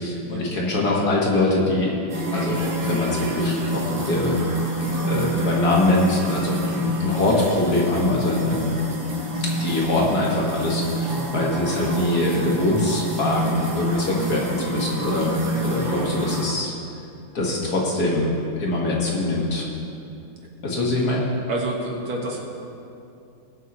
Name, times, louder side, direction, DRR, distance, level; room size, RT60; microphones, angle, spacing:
voice 1, 0.0-2.0 2.3-4.4 5.1-8.8 9.5-15.3 15.6-16.7 17.3-19.7 20.6-21.2, left 2 dB, 50° left, -3 dB, 2.0 m, -23 dB
sound 1, 2.1-16.5, right 1 dB, 30° right, 1.2 m, -27 dB
voice 2, 21.5-22.4, right 1 dB, 75° right, -1 dB, 2.2 m, -29 dB
20.0 x 8.1 x 3.0 m, 2.6 s
omnidirectional pair, 2.2 m